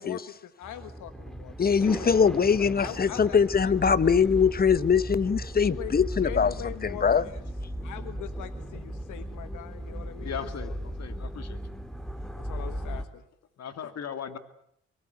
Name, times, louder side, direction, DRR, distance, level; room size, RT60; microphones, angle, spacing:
voice 1, 0.0-3.7 4.0-4.5 5.6-5.9 6.2-7.4 7.8-10.7 12.4-13.2, left 11 dB, 85° left, 1.5 m, -42 dB
sound 1, 0.6-13.0, equal, ahead, 2.6 m, -36 dB
voice 2, 1.6-7.3, left 6 dB, 30° left, 1.0 m, -23 dB
voice 3, 10.2-11.6 13.6-14.4, left 7 dB, 60° left, 2.7 m, -37 dB
24.0 x 24.0 x 8.2 m
cardioid pair, 90°, 30 cm